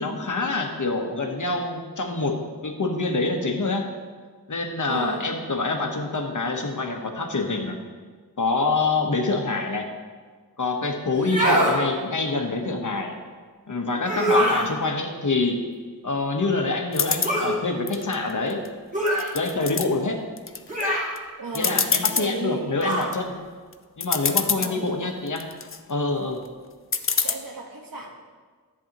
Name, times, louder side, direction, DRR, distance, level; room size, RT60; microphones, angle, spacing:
voice 1, 0.0-2.3 2.6-3.9 4.5-7.8 8.4-9.9 10.6-13.1 13.7-15.6 16.0-18.6 19.3-20.2 21.5-23.3 24.0-25.5 25.9-26.4, left 3 dB, 50° left, 3 dB, 1.1 m, -26 dB
voice 2, 4.9-5.3 14.4-14.8 21.4-21.8 22.1-22.7 24.6-25.1 27.2-28.1, right 3 dB, 65° right, 1 dB, 1.4 m, -34 dB
sound 1, 11.1-11.8 14.0-14.7 17.2-17.5 18.9-19.3 20.7-21.1 22.8-23.1, equal, 20° right, 2.1 m, -23 dB
sound 2, 16.9-17.3 17.9-18.7 19.1-19.9 20.4-20.8 21.2-21.3 21.5-22.3 22.8-23.2 23.7-23.8 24.0-24.7 25.3-25.8 26.9-27.3, left 5 dB, 35° left, 0.5 m, -25 dB
10.5 x 8.5 x 2.9 m, 1.5 s
wide cardioid pair, 60°, 38 cm